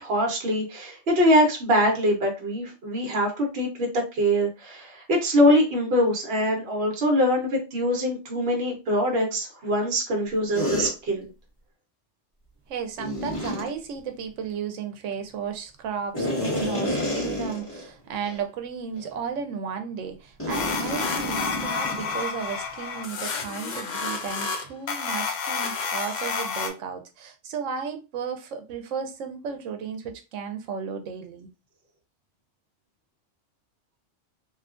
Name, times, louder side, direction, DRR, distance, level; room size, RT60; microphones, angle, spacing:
voice 1, 0.0-11.3, equal, 55° right, 1.0 m, -23 dB
sound 1, 10.5-10.9 13.0-13.7 16.1-17.9 18.2-18.4 19.0-19.1 20.4-22.2, left 1 dB, 10° left, 1.5 m, -29 dB
voice 2, 12.7-31.5, right 6 dB, 85° right, 0.9 m, -34 dB
sound 2, 20.5-26.7, left 5 dB, 65° left, 0.4 m, -30 dB
2.9 x 2.3 x 2.4 m
omnidirectional pair, 1.3 m